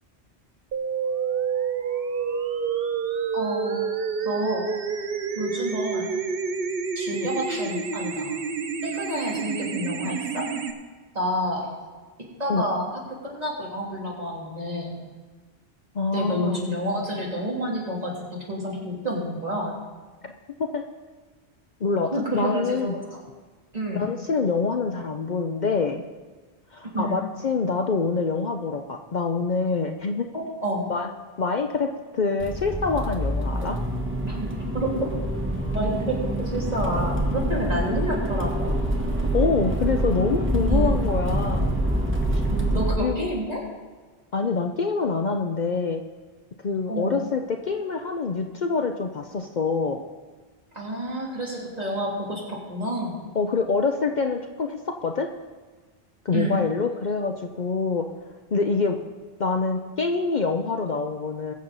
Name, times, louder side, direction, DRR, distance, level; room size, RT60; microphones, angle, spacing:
sound 1, 0.7-10.7, right 6 dB, 65° right, 1.0 m, -28 dB
voice 1, 3.3-3.9 4.2-4.7 5.3-6.1 6.9-8.4 8.8-10.4 11.1-11.7 12.4-12.9 13.2-14.9 16.1-19.8 22.1-23.1 23.7-24.1 26.8-27.1 30.6-30.9 34.2-35.1 35.7-38.7 40.6-40.9 42.5-43.6 46.9-47.2 50.7-53.3 56.3-56.6, equal, 40° right, -4 dB, 3.1 m, -29 dB
voice 2, 15.9-16.6 20.2-20.3 20.6-20.8 21.8-23.0 23.9-26.0 26.7-30.3 30.9-31.1 31.4-31.9 32.1-33.8 39.3-41.8 42.3-42.4 43.0-43.3 44.3-46.0 46.6-50.0 53.3-55.3 56.2-58.0 58.5-59.0 59.4-61.5, left 4 dB, 50° left, 4 dB, 0.7 m, -25 dB
Accelerating revving vroom, 32.4-42.9, right 1 dB, 10° right, 1.2 m, -26 dB
21.5 x 7.1 x 4.0 m, 1.4 s
omnidirectional pair, 1.1 m